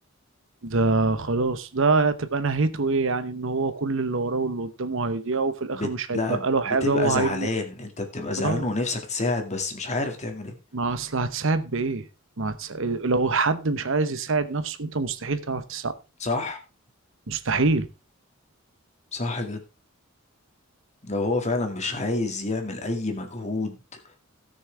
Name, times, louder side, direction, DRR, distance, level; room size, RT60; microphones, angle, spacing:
voice 1, 0.6-7.5 8.4-8.6 10.7-12.1 12.4-15.9 17.3-17.9, right 3 dB, 65° right, 0.9 m, -25 dB
voice 2, 5.7-10.6 16.2-16.6 17.5-17.6 19.1-19.6 21.0-24.0, left 2 dB, 35° left, 2.1 m, -28 dB
17.5 x 6.4 x 3.4 m
head